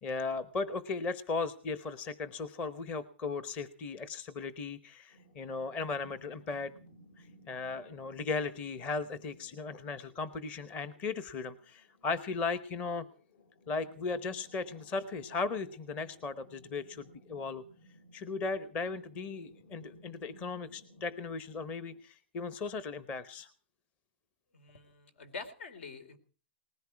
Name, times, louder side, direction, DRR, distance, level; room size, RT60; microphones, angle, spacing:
voice 1, 0.0-6.7 7.2-13.0 13.7-17.6 18.1-23.5, left 4 dB, 20° left, 13 dB, 0.9 m, -37 dB
sound 1, 5.1-22.0, equal, 60° left, 3.8 m, -59 dB
voice 2, 24.5-26.2, left 4 dB, 75° left, 13 dB, 4.1 m, -45 dB
19.5 x 15.0 x 4.7 m, 0.39 s
hypercardioid pair, 165°, 7 cm